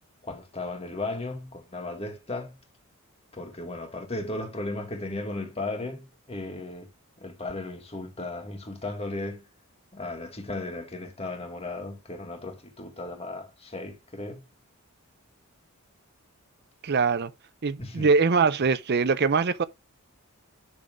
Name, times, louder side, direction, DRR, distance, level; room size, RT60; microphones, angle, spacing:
voice 1, 0.2-2.6 3.3-6.9 7.2-9.5 9.9-14.4 17.8-18.1, left 2 dB, 25° left, 1.9 m, -35 dB
voice 2, 16.8-17.3 17.6-19.6, right 4 dB, 45° right, 0.5 m, -22 dB
11.0 x 3.7 x 5.0 m
head